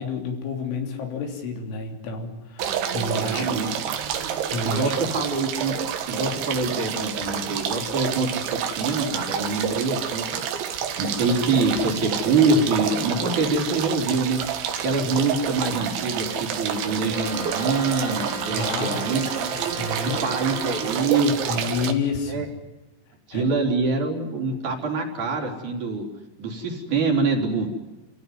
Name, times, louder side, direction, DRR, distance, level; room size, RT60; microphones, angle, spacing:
voice 1, 0.0-3.5 4.5-5.0 18.5-19.0 19.6-20.2 21.5-22.5 23.3-23.5, left 4 dB, 90° left, 4 dB, 5.7 m, -30 dB
sound 1, 2.6-21.9, right 8 dB, 75° right, 4.1 m, -29 dB
voice 2, 3.1-3.7 4.6-5.8 6.1-10.5 11.0-14.6 14.8-19.6 20.0-21.6 22.3-22.5 23.3-26.1 26.4-27.7, right 3 dB, 45° right, 2 dB, 5.0 m, -25 dB
Brass instrument, 17.1-21.1, right 1 dB, 15° right, 1.4 m, -36 dB
28.5 x 16.0 x 9.7 m, 1.1 s
omnidirectional pair, 5.4 m